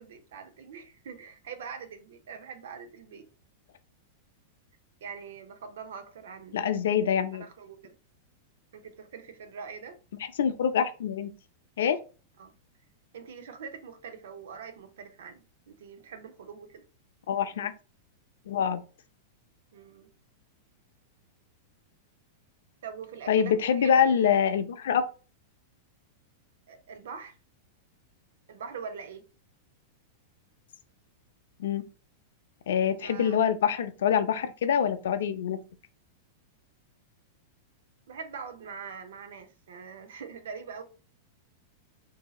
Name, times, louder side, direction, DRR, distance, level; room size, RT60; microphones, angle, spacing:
voice 1, 0.0-3.3 5.0-8.0 8.7-10.0 12.4-12.5 13.1-16.8 19.7-20.1 22.8-24.3 26.7-27.4 28.5-29.2 33.0-33.5 38.1-40.8, right 6 dB, 75° right, 0.6 m, -43 dB
voice 2, 6.5-7.4 10.4-11.3 11.8-12.0 17.3-17.7 18.5-18.8 23.3-25.0 31.6-31.8 32.7-35.6, left 8 dB, 80° left, 0.4 m, -25 dB
4.0 x 2.7 x 2.3 m
supercardioid pair, 170°, 0 cm